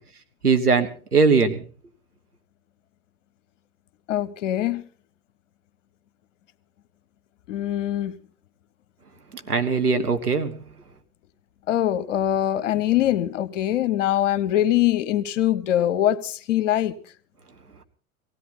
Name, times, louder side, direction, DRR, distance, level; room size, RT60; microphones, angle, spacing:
voice 1, 0.4-1.6 9.5-10.5, right 4 dB, 85° right, 1.6 m, -20 dB
voice 2, 4.1-4.8 7.5-8.2 11.7-16.9, left 12 dB, 55° left, 1.1 m, -23 dB
18.0 x 16.5 x 4.0 m
figure-of-eight pair, 95°, 44 cm